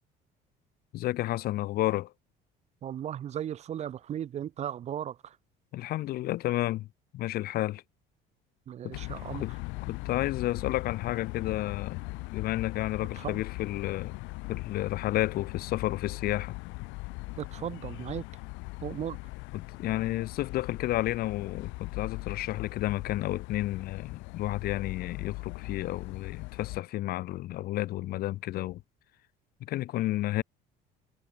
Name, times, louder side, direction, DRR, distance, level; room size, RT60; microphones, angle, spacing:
voice 1, 0.9-2.1 5.7-6.9 7.1-7.8 8.8-8.9 9.3-9.6 9.8-12.0 12.3-14.1 14.5-16.6 19.5-28.8 29.6-30.4, left 15 dB, 55° left, 0.7 m, -31 dB
voice 2, 2.8-5.2 8.7-9.4 13.2-13.4 17.4-18.2 18.8-19.2, right 10 dB, 35° right, 0.7 m, -36 dB
sound 1, 8.9-26.8, left 25 dB, 85° left, 1.1 m, -39 dB
cardioid pair, 140°, 19 cm